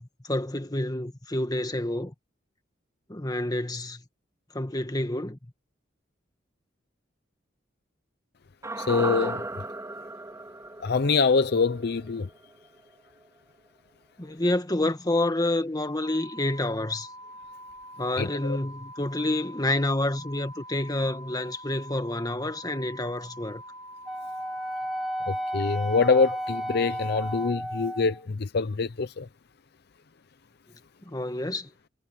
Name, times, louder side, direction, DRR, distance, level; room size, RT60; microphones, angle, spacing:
voice 1, 0.0-2.1 3.1-4.0 4.5-5.4 14.2-17.1 18.0-23.6 31.0-31.7, left 1 dB, 20° left, 1.7 m, -28 dB
sound 1, 8.6-12.9 13.2-13.3, right 2 dB, 15° right, 4.3 m, -35 dB
voice 2, 8.8-9.4 10.8-12.3 18.2-18.6 25.3-29.3, left 4 dB, 60° left, 0.6 m, -25 dB
sound 2, 16.0-27.5, equal, 90° right, 1.6 m, -45 dB
Wind instrument woodwind instrument, 24.1-28.2, equal, ahead, 3.2 m, -33 dB
head